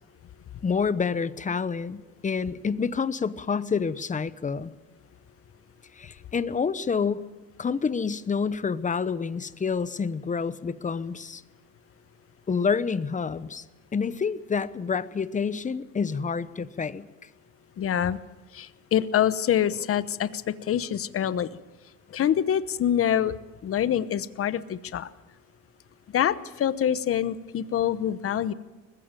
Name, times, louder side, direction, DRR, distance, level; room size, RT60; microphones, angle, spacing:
voice 1, 0.6-4.7 5.9-7.2 7.6-11.4 12.5-13.6 13.9-17.1, left 5 dB, 25° left, 15 dB, 0.9 m, -28 dB
voice 2, 17.8-18.2 18.5-21.5 22.1-23.4 23.6-25.1 26.1-28.5, left 10 dB, 45° left, 15 dB, 1.0 m, -25 dB
20.5 x 15.0 x 9.0 m, 1.2 s
cardioid pair, 115°, 30 cm